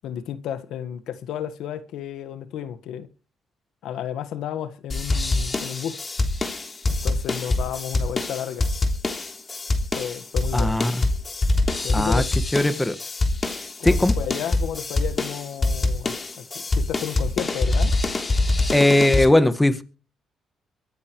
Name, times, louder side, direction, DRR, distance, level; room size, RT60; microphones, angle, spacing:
voice 1, 0.0-3.1 3.8-6.0 6.9-8.7 9.9-10.8 11.8-12.3 13.8-18.0, left 9 dB, 80° left, 1.5 m, -32 dB
sound 1, 4.9-19.3, left 2 dB, 30° left, 3.3 m, -24 dB
voice 2, 10.5-11.0 11.9-12.2 12.5-13.0 13.8-14.1 18.7-19.8, left 1 dB, 10° left, 1.6 m, -19 dB
24.5 x 9.7 x 3.1 m
cardioid pair, 90°, 0 cm